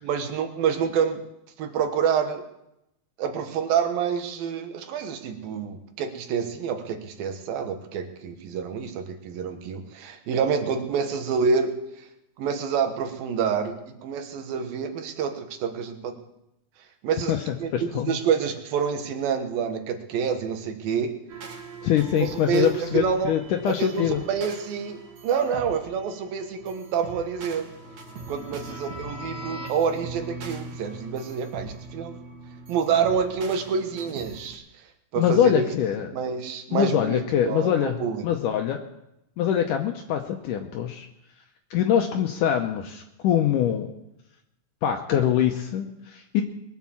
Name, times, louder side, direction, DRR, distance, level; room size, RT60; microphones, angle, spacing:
voice 1, 0.0-1.2 1.6-2.4 3.2-12.0 12.4-16.2 17.0-17.3 17.6-21.1 22.2-23.3 23.7-27.7 28.3-32.1 32.7-34.6 35.1-35.7 36.1-38.3, right 6 dB, 80° right, 6 dB, 3.2 m, -27 dB
voice 2, 17.7-18.2 21.8-24.2 35.2-36.1 36.7-38.0 38.2-38.8 39.4-41.1 41.7-43.9 44.8-46.4, left 9 dB, 75° left, 3 dB, 2.2 m, -24 dB
sound 1, 21.3-34.5, right 2 dB, 60° right, 3.0 m, -40 dB
22.0 x 7.3 x 7.2 m, 0.85 s
omnidirectional pair, 4.1 m